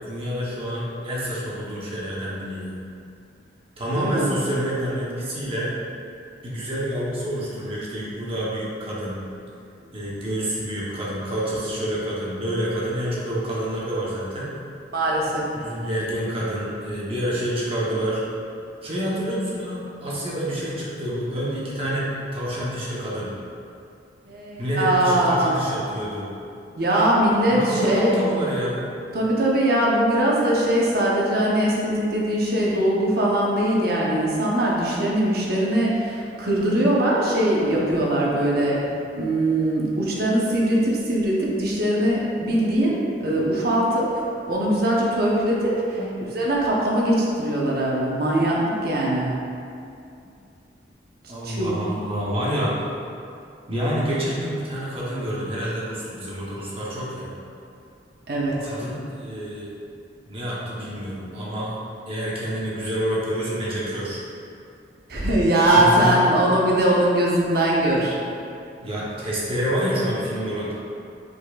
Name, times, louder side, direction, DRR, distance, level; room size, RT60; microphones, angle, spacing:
voice 1, 0.1-2.8 3.8-5.7 6.4-9.3 9.9-14.5 15.5-18.2 18.8-23.4 24.6-26.3 27.5-28.9 46.0-46.1 51.3-52.8 53.7-57.3 58.6-59.8 60.3-61.7 62.1-64.2 65.7-66.2 68.8-70.7, equal, 35° right, -6 dB, 0.9 m, -28 dB
voice 2, 3.9-4.3 14.9-15.4 24.3-25.6 26.8-28.1 29.1-38.8 39.1-44.1 44.5-46.0 46.3-49.3 51.4-51.7 58.3-58.7 65.1-68.2, right 1 dB, 60° right, -4 dB, 0.9 m, -21 dB
5.2 x 4.3 x 2.4 m, 2.6 s
head